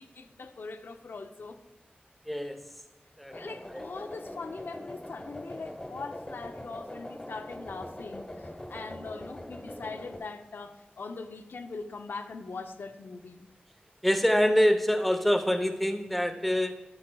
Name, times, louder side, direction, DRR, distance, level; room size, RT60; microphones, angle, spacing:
voice 1, 0.0-1.6 3.3-13.5, left 4 dB, 80° left, 0.5 m, -41 dB
voice 2, 2.3-2.6 3.2-3.3 3.7-3.8 14.0-16.8, equal, ahead, 0.6 m, -25 dB
sound 1, 3.3-10.2, left 1 dB, 25° left, 1.1 m, -42 dB
10.5 x 8.6 x 2.2 m
wide cardioid pair, 90°, 4 cm